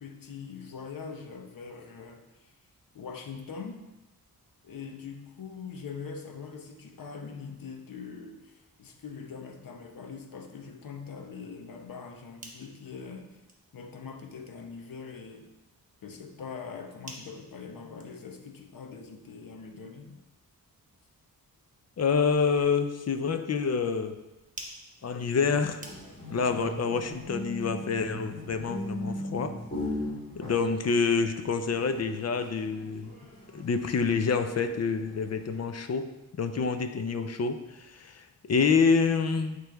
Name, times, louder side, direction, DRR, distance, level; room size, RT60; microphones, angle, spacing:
voice 1, 0.0-2.5 2.9-3.8 4.6-13.4 13.7-15.4 16.0-20.1, left 5 dB, 65° left, 3 dB, 0.9 m, -42 dB
sound 1, 12.2-26.4, right 2 dB, 20° right, 0.9 m, -53 dB
voice 2, 22.0-24.2 25.0-25.8 26.3-29.5 30.3-33.2 33.5-39.6, left 5 dB, 45° left, 8 dB, 0.5 m, -27 dB
sound 2, 25.4-35.6, left 1 dB, 25° left, 2.5 m, -39 dB
8.8 x 3.3 x 4.6 m, 1.0 s
wide cardioid pair, 160°, 36 cm